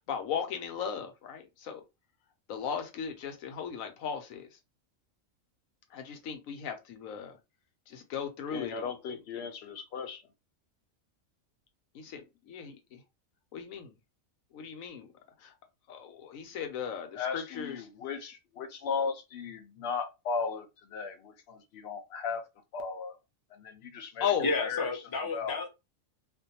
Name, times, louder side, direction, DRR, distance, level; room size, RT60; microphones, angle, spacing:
voice 1, 0.1-1.8 2.5-4.5 5.9-7.4 7.9-8.9 9.3-9.5 11.9-13.0 13.5-13.9 14.5-15.1 15.4-15.5 15.9-17.9 24.2-24.5, left 7 dB, 80° left, 1.0 m, -36 dB
voice 2, 8.5-10.2 17.2-22.4 22.7-23.1 23.6-24.3 24.6-24.9 25.3-25.6, left 5 dB, 60° left, 0.7 m, -36 dB
voice 3, 24.4-25.7, left 3 dB, 30° left, 0.4 m, -31 dB
2.5 x 2.1 x 2.7 m
omnidirectional pair, 1.4 m